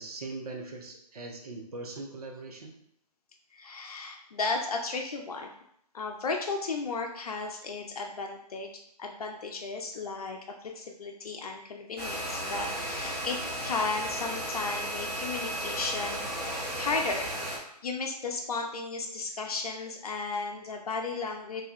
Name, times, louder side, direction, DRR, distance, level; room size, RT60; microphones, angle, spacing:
voice 1, 0.0-2.7, right 3 dB, 65° right, 1 dB, 0.7 m, -40 dB
voice 2, 3.5-5.5 5.9-8.7 9.0-21.6, left 4 dB, 65° left, 2 dB, 0.5 m, -34 dB
sound 1, 12.0-17.6, right 1 dB, 10° right, 0.7 m, -34 dB
3.3 x 2.3 x 4.2 m, 0.73 s
figure-of-eight pair, 130°, 21 cm